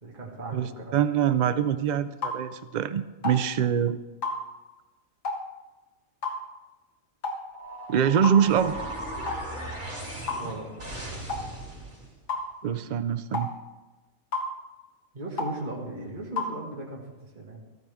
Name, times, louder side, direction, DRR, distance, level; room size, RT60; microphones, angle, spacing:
voice 1, 0.0-1.0 10.4-10.7 15.1-17.6, right 2 dB, 35° right, -2 dB, 2.0 m, -37 dB
voice 2, 0.5-4.0 7.9-8.7 12.6-13.5, right 8 dB, 85° right, 12 dB, 0.4 m, -24 dB
sound 1, 2.2-2.4 3.2-3.4 4.2-4.4 5.2-5.4 6.2-6.4 7.2-7.4 8.2-8.4 9.3-9.4 10.3-10.5 11.3-11.5 12.3-12.5 13.3-13.5 14.3-14.5 15.4-15.6 16.4-16.5, left 3 dB, 75° left, 1.8 m, -30 dB
sound 2, 7.5-12.1, right 1 dB, 60° right, 4.6 m, -37 dB
14.5 x 13.5 x 3.5 m, 1.2 s
omnidirectional pair, 1.3 m